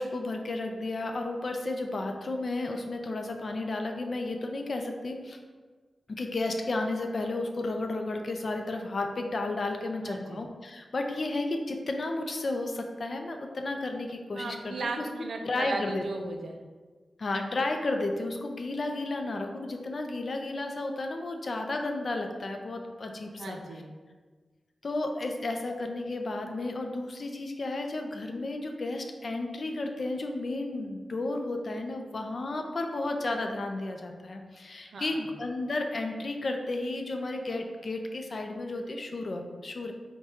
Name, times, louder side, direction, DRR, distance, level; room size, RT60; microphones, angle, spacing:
voice 1, 0.0-5.4 6.1-15.1 15.4-16.0 17.2-23.6 24.8-39.9, left 2 dB, 60° left, 4 dB, 0.4 m, -33 dB
voice 2, 10.0-10.4 14.3-16.6 23.4-23.9 34.9-35.2, right 3 dB, 80° right, 3 dB, 0.4 m, -36 dB
4.7 x 2.2 x 2.8 m, 1.4 s
cardioid pair, 65°, 0 cm